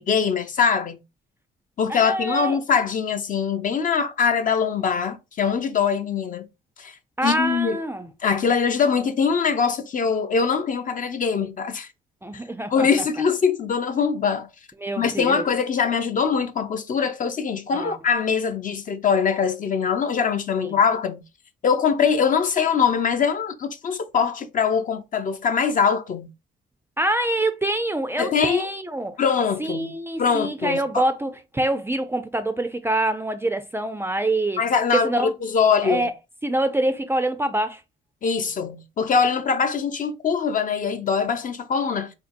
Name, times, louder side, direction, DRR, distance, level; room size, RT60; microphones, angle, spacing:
voice 1, 0.1-1.0 1.8-6.5 6.8-7.0 7.2-7.8 8.2-11.9 12.7-14.5 15.0-21.2 21.6-26.3 28.2-28.7 29.2-29.9 30.2-31.1 34.6-36.1 38.2-42.1, left 6 dB, 40° left, 0.5 m, -22 dB
voice 2, 1.9-2.6 7.2-8.1 12.2-12.9 14.8-15.4 17.7-18.0 20.6-20.8 27.0-29.2 29.6-34.6 34.9-35.3 35.8-36.1 36.4-37.8, right 1 dB, 10° right, 0.4 m, -25 dB
3.7 x 2.6 x 2.5 m
cardioid pair, 90°, 20 cm